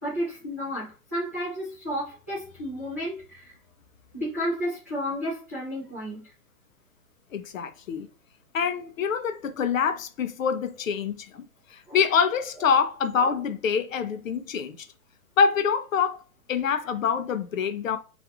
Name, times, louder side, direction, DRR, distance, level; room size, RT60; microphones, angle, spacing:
voice 1, 0.0-3.5 4.1-6.2 11.9-12.0 13.2-13.3, equal, 10° right, 0.5 m, -32 dB
voice 2, 7.3-8.1 8.5-11.4 11.7-14.8 15.4-16.2 16.5-18.0, left 6 dB, 60° left, 0.5 m, -25 dB
2.4 x 2.4 x 2.7 m
hypercardioid pair, 165°, 45 cm